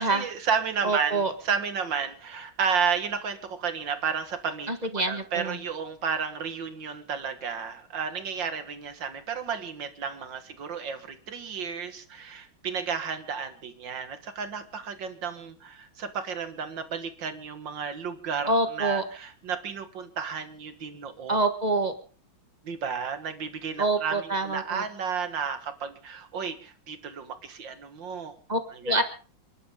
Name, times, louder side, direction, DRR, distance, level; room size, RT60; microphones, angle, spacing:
voice 1, 0.0-4.7 5.1-21.4 22.6-28.3 28.7-29.0, right 6 dB, 65° right, 9 dB, 2.2 m, -32 dB
voice 2, 0.8-1.3 4.7-5.6 18.5-19.0 21.3-21.9 23.8-24.9 28.5-29.0, right 2 dB, 25° right, 7 dB, 1.5 m, -26 dB
29.0 x 11.5 x 3.8 m, 0.37 s
omnidirectional pair, 2.2 m